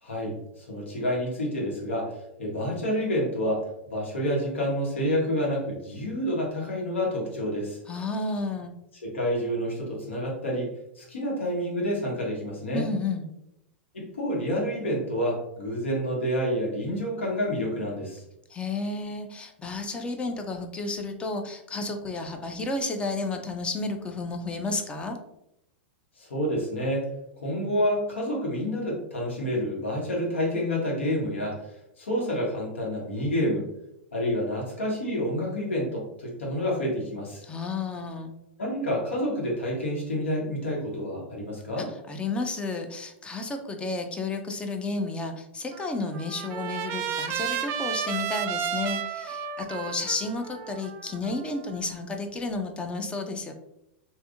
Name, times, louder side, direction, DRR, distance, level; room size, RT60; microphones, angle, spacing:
voice 1, 0.0-7.8 9.0-10.7 11.0-12.8 13.9-18.2 26.2-27.1 27.4-33.7 34.1-37.4 38.6-41.9, equal, 80° left, -3 dB, 1.3 m, -28 dB
voice 2, 7.9-8.7 12.7-13.3 18.5-25.2 37.4-38.3 41.8-53.5, left 3 dB, 15° left, 5 dB, 0.5 m, -32 dB
Trumpet, 45.7-51.9, right 8 dB, 40° right, 0.3 m, -33 dB
3.4 x 2.5 x 2.6 m, 0.82 s
hypercardioid pair, 105°, 6 cm